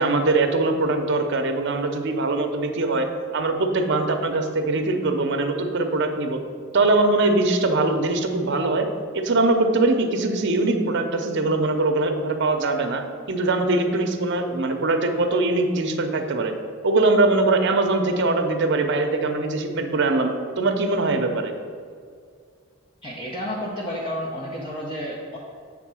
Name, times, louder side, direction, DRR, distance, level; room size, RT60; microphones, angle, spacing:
voice 1, 0.0-3.1 3.3-6.4 6.7-8.9 9.1-16.5 16.8-21.5, right 2 dB, 55° right, 6 dB, 0.7 m, -22 dB
voice 2, 23.0-25.4, equal, 25° left, -4 dB, 0.8 m, -31 dB
7.6 x 3.7 x 6.2 m, 2.1 s
head